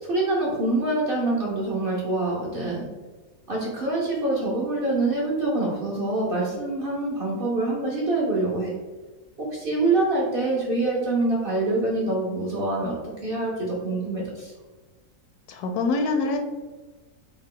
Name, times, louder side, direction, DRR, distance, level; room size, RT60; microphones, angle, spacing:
voice 1, 0.0-2.8 3.5-8.7 9.4-12.9 13.2-14.5, right 2 dB, 50° right, -4 dB, 0.7 m, -25 dB
voice 2, 15.5-16.5, left 3 dB, 80° left, 5 dB, 1.1 m, -25 dB
3.5 x 2.3 x 3.6 m, 1.3 s
omnidirectional pair, 1.6 m